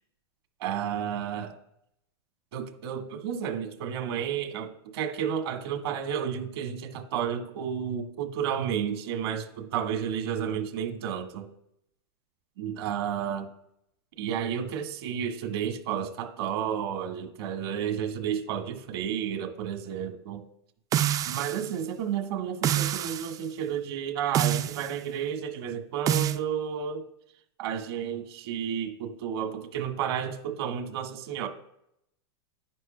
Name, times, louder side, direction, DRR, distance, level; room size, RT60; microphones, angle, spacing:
voice 1, 0.6-1.6 2.5-11.5 12.6-13.5 14.2-20.4 21.3-27.0 27.6-31.5, right 8 dB, 70° right, 4 dB, 1.6 m, -31 dB
sound 1, 20.9-21.7 22.6-23.3 24.3-24.9 26.1-26.4, right 11 dB, 25° right, 0.3 m, -26 dB
10.5 x 10.0 x 2.2 m, 0.77 s
hypercardioid pair, 120°, 13 cm